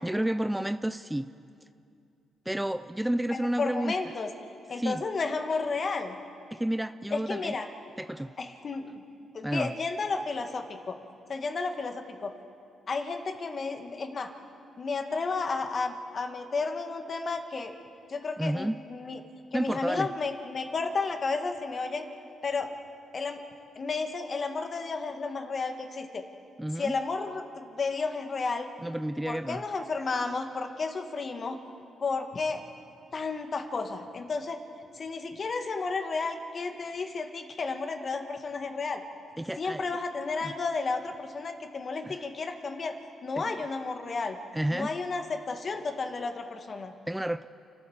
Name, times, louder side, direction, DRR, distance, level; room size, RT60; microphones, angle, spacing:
voice 1, 0.0-1.3 2.5-4.0 4.7-5.0 6.5-7.5 8.0-8.3 9.4-9.7 18.4-18.8 19.5-20.1 26.6-26.9 28.8-29.6 39.4-39.9 40.4-40.5 42.0-42.2 43.4-43.5 44.5-44.9 47.1-47.5, right 1 dB, 5° right, 12 dB, 0.5 m, -30 dB
voice 2, 3.3-4.3 4.7-6.2 7.1-7.7 8.4-9.0 9.3-11.0 11.3-12.3 12.9-14.3 14.8-17.7 18.1-19.2 19.5-22.1 22.4-22.7 23.1-23.4 23.8-26.2 26.8-28.7 29.3-31.6 32.0-32.6 33.1-34.6 34.9-39.0 39.6-43.0 43.2-44.4 44.7-46.9, left 4 dB, 45° left, 5 dB, 1.9 m, -32 dB
29.5 x 12.5 x 7.2 m, 2.5 s
cardioid pair, 80°, 0 cm